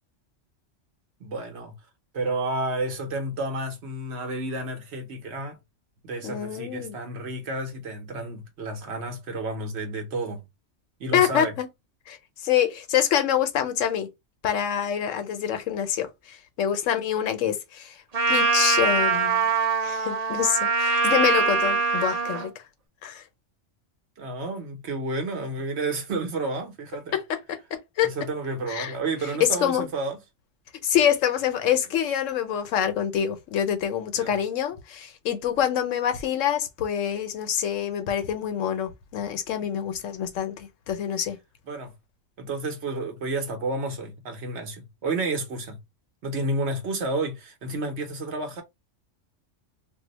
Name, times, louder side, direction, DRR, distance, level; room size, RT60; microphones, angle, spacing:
voice 1, 1.2-1.7 2.1-5.6 6.0-10.4 11.0-11.5 24.2-27.1 28.0-30.2 34.2-34.3 41.7-41.9 42.4-45.8 46.2-48.6, right 2 dB, 65° right, 1.1 m, -31 dB
voice 2, 6.2-7.0 11.1-11.7 12.1-14.1 14.4-18.0 18.3-19.5 19.8-22.6 23.0-23.2 27.1-28.1 28.7-29.0 29.4-29.9 30.8-41.4, left 9 dB, 90° left, 1.0 m, -26 dB
Trumpet, 18.1-22.5, right 4 dB, 40° right, 0.7 m, -23 dB
2.7 x 2.1 x 3.8 m
omnidirectional pair, 1.3 m